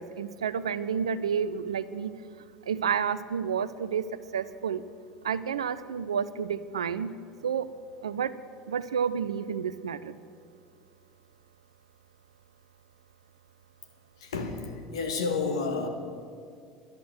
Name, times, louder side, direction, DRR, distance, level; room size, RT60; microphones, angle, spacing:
voice 1, 0.0-2.1 2.7-4.1 4.3-4.8 5.2-7.1 7.4-7.7 8.0-8.3 8.7-10.1, right 7 dB, 75° right, 15 dB, 0.5 m, -30 dB
voice 2, 14.2-15.9, left 4 dB, 70° left, 6 dB, 1.6 m, -30 dB
11.0 x 11.0 x 7.8 m, 2.3 s
figure-of-eight pair, 70°, 3 cm